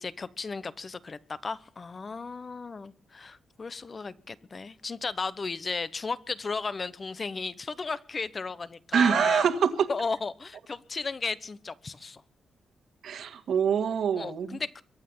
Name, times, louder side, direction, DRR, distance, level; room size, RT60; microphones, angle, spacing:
voice 1, 0.0-9.5 9.9-12.2 14.1-14.8, left 4 dB, 30° left, 17 dB, 1.0 m, -35 dB
voice 2, 8.9-9.9 13.0-14.6, right 7 dB, 70° right, 10 dB, 2.1 m, -25 dB
23.0 x 9.2 x 5.6 m, 0.43 s
wide cardioid pair, 130°, 0 cm